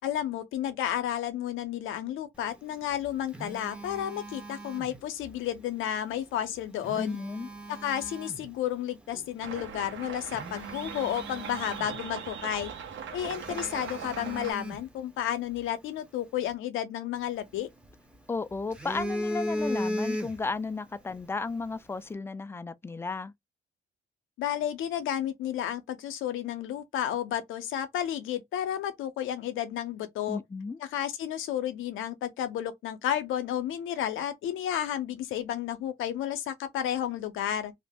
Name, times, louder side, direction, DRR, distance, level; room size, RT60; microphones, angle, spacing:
voice 1, 0.0-7.2 7.7-12.7 13.1-17.7 24.4-30.4 30.8-37.7, left 10 dB, 85° left, 0.6 m, -32 dB
Telephone, 2.8-5.4 6.6-8.5 9.1-9.3 9.8-9.9 10.3-12.3 12.6-12.7 13.2-15.6 17.2-18.1 18.5-20.7 21.0-21.2, equal, 5° right, 0.7 m, -37 dB
voice 2, 7.0-7.5 18.3-23.3 30.3-30.8, left 4 dB, 10° left, 0.3 m, -34 dB
sound 1, 9.4-14.5, right 7 dB, 70° right, 0.9 m, -40 dB
2.5 x 2.1 x 3.4 m
cardioid pair, 90°, 20 cm